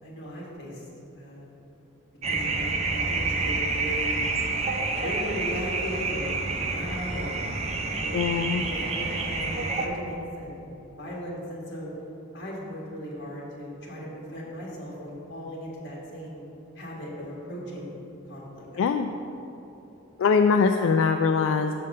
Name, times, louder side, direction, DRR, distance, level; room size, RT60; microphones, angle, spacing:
voice 1, 0.0-0.8 1.1-1.4 2.2-4.2 4.9-8.3 8.6-10.7 11.0-11.9 12.3-16.4 16.7-18.0 18.3-18.8, equal, 55° left, -4 dB, 1.7 m, -37 dB
sound 1, 2.2-9.9, right 3 dB, 30° right, 0.5 m, -28 dB
voice 2, 8.1-8.6 18.8-19.1 20.2-21.7, left 5 dB, 80° left, 6 dB, 0.3 m, -22 dB
6.7 x 5.1 x 5.4 m, 3.0 s
head